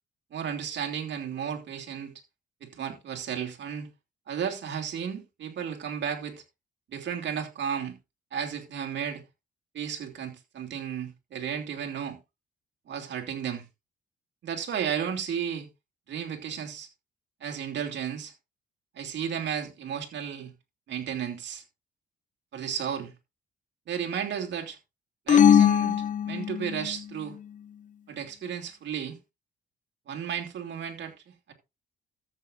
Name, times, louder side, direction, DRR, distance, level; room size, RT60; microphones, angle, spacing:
voice 1, 0.3-2.1 2.6-3.9 4.3-6.4 6.9-8.0 8.3-9.2 9.7-12.2 12.9-13.6 14.4-15.7 16.1-16.9 17.4-18.3 18.9-20.5 20.9-21.6 22.5-23.1 23.9-24.8 25.3-27.4 28.1-29.2 30.1-31.1 31.5-31.6, right 8 dB, 65° right, 2.9 m, -33 dB
sound 1, 25.3-27.0, left 9 dB, 40° left, 0.5 m, -20 dB
13.5 x 8.1 x 2.6 m
cardioid pair, 90°, 20 cm